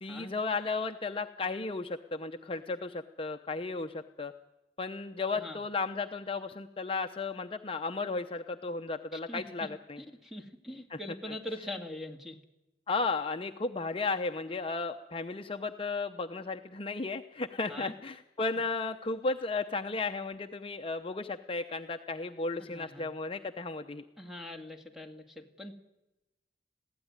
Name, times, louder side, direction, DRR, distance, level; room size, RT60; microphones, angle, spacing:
voice 1, 0.0-4.3 4.8-10.0 10.9-11.0 12.9-24.0, left 3 dB, 30° left, 6 dB, 0.7 m, -34 dB
voice 2, 9.1-9.7 10.0-12.4 17.7-17.9 22.6-23.1 24.2-25.7, left 1 dB, ahead, 3 dB, 2.0 m, -43 dB
21.5 x 16.0 x 9.7 m, 0.98 s
head